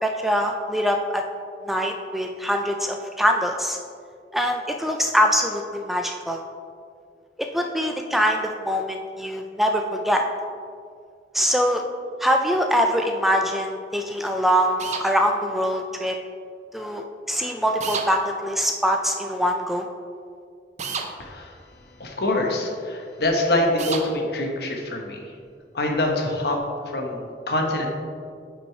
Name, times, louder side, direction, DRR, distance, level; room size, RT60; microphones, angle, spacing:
voice 1, 0.0-1.2 1.6-3.8 4.3-6.4 7.4-10.2 11.3-11.8 12.2-16.2 16.7-19.8, equal, ahead, 3 dB, 0.3 m, -23 dB
sound 1, 14.8-15.1 17.8-18.1 20.8-21.1 23.8-24.1, right 5 dB, 40° right, 0.6 m, -29 dB
voice 2, 21.2-21.5 22.0-25.2 25.7-26.6 26.9-27.9, left 1 dB, 65° left, 1 dB, 1.1 m, -25 dB
9.2 x 5.3 x 3.2 m, 2.2 s
head